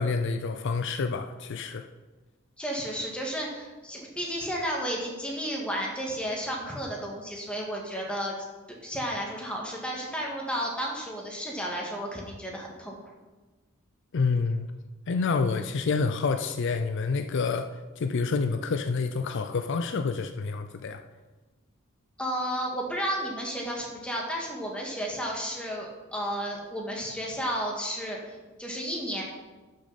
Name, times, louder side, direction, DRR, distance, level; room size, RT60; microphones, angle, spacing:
voice 1, 0.0-1.8 14.1-14.7 15.1-21.0, left 4 dB, 60° left, 7 dB, 0.5 m, -28 dB
voice 2, 2.6-8.4 8.7-13.1 22.2-29.2, equal, 5° left, -2 dB, 1.8 m, -32 dB
11.5 x 6.6 x 4.1 m, 1.2 s
head